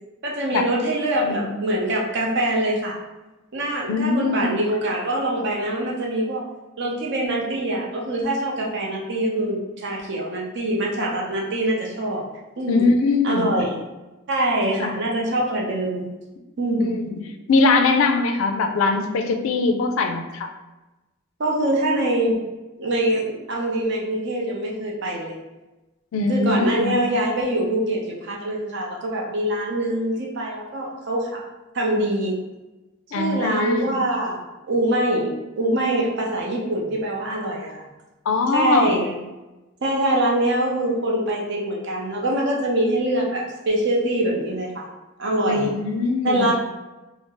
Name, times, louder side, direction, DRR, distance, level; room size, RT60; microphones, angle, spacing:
voice 1, 0.2-3.0 3.5-6.4 6.8-12.2 12.6-12.9 13.2-13.8 14.3-16.1 16.6-16.9 21.4-22.4 22.8-25.4 26.3-31.4 31.7-32.4 33.1-34.4 34.7-37.8 38.5-39.2 39.8-44.9 45.2-45.7 46.2-46.5, right 1 dB, 60° right, -2 dB, 0.6 m, -24 dB
voice 2, 3.9-4.6 12.7-13.6 14.8-14.9 16.8-17.1 17.5-20.5 26.1-27.0 33.1-34.0 38.3-39.1 45.5-46.5, left 3 dB, 85° left, 6 dB, 0.4 m, -22 dB
2.5 x 2.0 x 3.7 m, 1.1 s
head